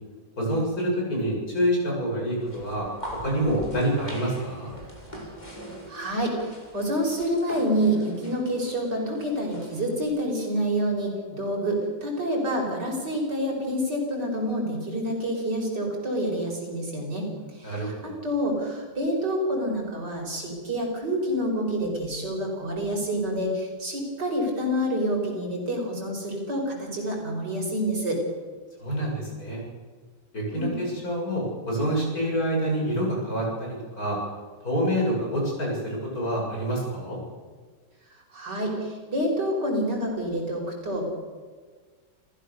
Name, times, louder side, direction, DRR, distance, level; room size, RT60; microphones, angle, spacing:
voice 1, 0.4-2.9 3.2-4.7 17.6-18.1 28.8-29.6 30.3-34.2 34.6-37.2, equal, 50° left, -2 dB, 7.9 m, -27 dB
sound 1, 2.4-10.0, equal, 20° left, 5.1 m, -42 dB
voice 2, 5.9-17.9 18.2-28.2 30.5-30.8 38.1-41.1, equal, 65° right, 0 dB, 6.0 m, -28 dB
29.5 x 15.5 x 6.9 m, 1.5 s
omnidirectional pair, 2.0 m